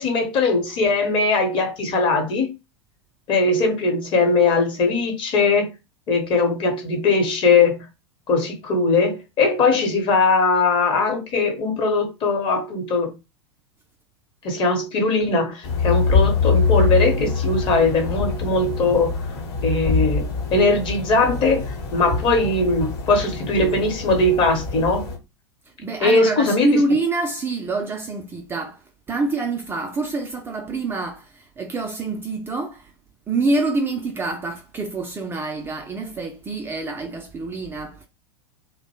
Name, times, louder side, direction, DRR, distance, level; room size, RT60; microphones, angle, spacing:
voice 1, 0.0-2.6 3.3-5.7 6.1-7.9 8.3-13.2 14.4-19.2 19.6-25.1 26.0-26.8, left 3 dB, 35° left, 0.9 m, -20 dB
sound 1, 15.6-25.2, left 5 dB, 55° left, 1.1 m, -24 dB
voice 2, 25.8-28.8 29.1-32.9 33.3-38.1, right 2 dB, 15° right, 0.4 m, -26 dB
2.5 x 2.1 x 2.8 m
figure-of-eight pair, 90°, 15 cm